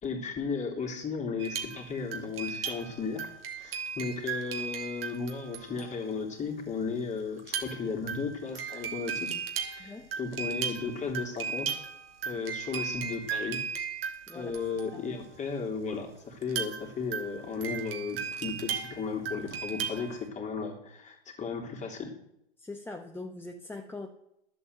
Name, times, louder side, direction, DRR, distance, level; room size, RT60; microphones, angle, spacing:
voice 1, 0.0-3.3 3.6-9.4 9.7-11.8 12.2-13.6 14.3-22.1, left 5 dB, 25° left, 2 dB, 3.2 m, -35 dB
sound 1, 1.4-6.1 7.4-15.3 16.4-20.2, right 7 dB, 75° right, 2.4 m, -36 dB
voice 2, 9.8-10.1 14.3-14.6 14.9-15.0 22.6-24.1, left 2 dB, 5° left, 3 dB, 1.0 m, -42 dB
11.0 x 8.0 x 8.0 m, 0.79 s
hypercardioid pair, 115°, 29 cm